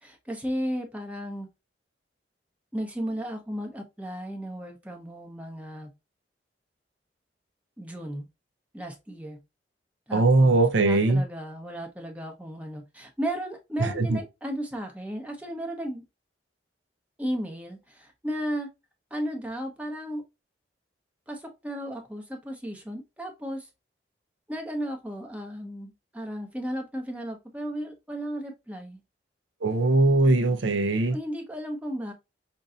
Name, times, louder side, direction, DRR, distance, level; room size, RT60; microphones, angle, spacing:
voice 1, 0.0-1.5 2.7-5.9 7.8-8.3 8.7-9.4 10.1-16.0 17.2-18.7 19.1-20.2 21.3-23.7 24.5-29.0 31.1-32.1, equal, 5° right, 0.8 m, -34 dB
voice 2, 10.1-11.2 13.8-14.2 29.6-31.2, right 2 dB, 80° right, 0.7 m, -21 dB
5.3 x 2.6 x 2.4 m
head